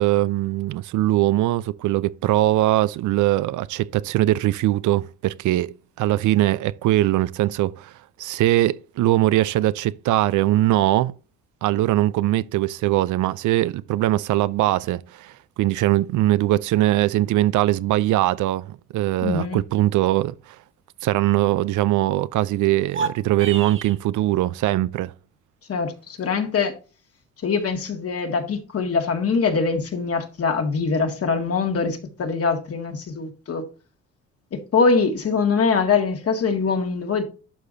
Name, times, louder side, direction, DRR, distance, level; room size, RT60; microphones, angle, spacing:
voice 1, 0.0-7.9 8.2-11.1 11.6-20.6 21.0-25.1, right 15 dB, 75° right, 0.5 m, -21 dB
voice 2, 19.2-19.6 25.7-26.7 27.4-33.6 34.5-37.2, left 5 dB, 50° left, 2.0 m, -23 dB
sound 1, 22.8-24.0, right 5 dB, 40° right, 1.3 m, -29 dB
11.5 x 4.9 x 2.7 m
cardioid pair, 85°, 31 cm